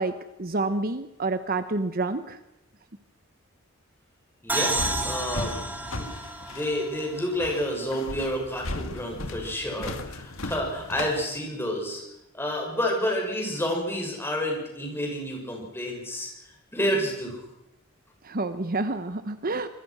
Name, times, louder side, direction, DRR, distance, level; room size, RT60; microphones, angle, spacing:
voice 1, 0.0-2.4 18.2-19.7, right 3 dB, 45° right, 10 dB, 1.0 m, -28 dB
voice 2, 4.4-4.8 5.0-5.5 5.9-6.1 6.5-12.0 12.3-16.3 16.7-17.4, equal, 10° left, 0 dB, 7.1 m, -29 dB
sound 1, 4.5-11.2, left 2 dB, 75° left, 1.9 m, -36 dB
sound 2, 4.5-8.1, right 2 dB, 10° right, 1.8 m, -31 dB
26.0 x 21.5 x 6.3 m, 0.85 s
head